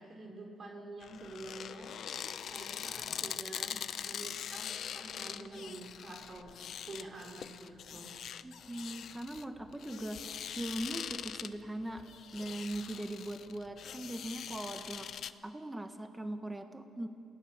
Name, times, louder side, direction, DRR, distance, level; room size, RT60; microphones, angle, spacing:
voice 1, 0.0-1.9 2.5-6.5 6.9-8.1, right 2 dB, 45° right, 1 dB, 3.5 m, -47 dB
sound 1, 1.0-15.3, left 9 dB, 65° left, 0.8 m, -43 dB
voice 2, 8.4-10.2 10.5-12.1 12.3-15.1 15.4-17.1, right 1 dB, 15° right, 7 dB, 1.5 m, -40 dB
29.0 x 18.5 x 7.3 m, 2.5 s
cardioid pair, 90°, 0 cm